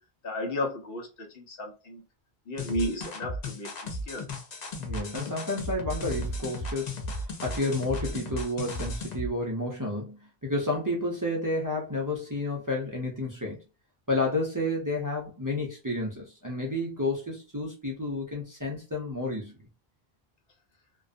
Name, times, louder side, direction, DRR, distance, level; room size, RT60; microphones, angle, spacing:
voice 1, 0.2-2.0 2.5-4.3, left 1 dB, 65° left, 0.9 m, -33 dB
sound 1, 2.6-9.3, left 1 dB, 50° left, 0.6 m, -35 dB
voice 2, 4.8-13.6 14.1-19.5, left 2 dB, 25° right, 0.5 m, -31 dB
2.5 x 2.2 x 2.5 m
omnidirectional pair, 1.1 m